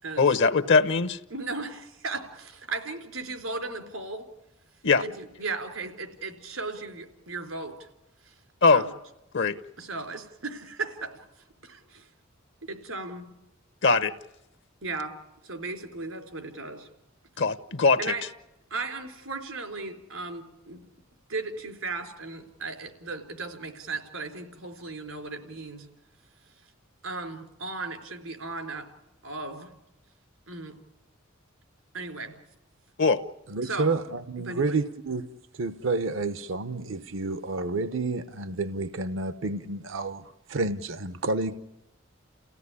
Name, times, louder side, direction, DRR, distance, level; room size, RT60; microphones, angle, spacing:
voice 1, 0.2-1.2 4.8-5.0 8.6-8.8 9.3-9.6 13.8-14.1 17.4-18.1 33.0-33.2, left 4 dB, 65° left, 1.0 m, -21 dB
voice 2, 1.3-4.2 5.0-7.7 8.7-8.9 9.8-11.1 11.6-12.1 12.7-13.3 14.8-15.1 15.4-16.9 18.0-18.2 18.7-20.8 21.3-25.9 27.0-28.9 29.2-29.7 30.5-30.8 31.9-32.3 33.6-33.9 34.5-34.8, right 3 dB, 85° right, 3.8 m, -36 dB
voice 3, 33.5-41.6, right 3 dB, 70° right, 0.8 m, -30 dB
29.5 x 16.5 x 9.7 m
head